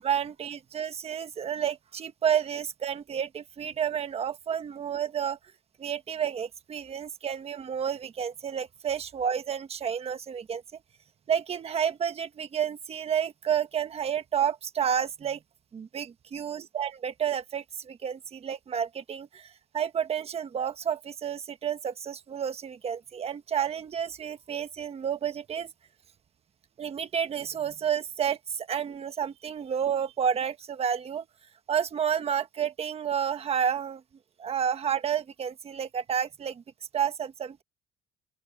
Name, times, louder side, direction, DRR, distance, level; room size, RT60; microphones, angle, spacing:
voice 1, 0.0-5.4 5.8-10.6 11.3-15.4 15.7-25.7 26.8-31.2 31.7-34.0 34.4-36.6 36.9-37.6, right 8 dB, 35° right, 1.3 m, -30 dB
open air
cardioid pair, 125°, 18 cm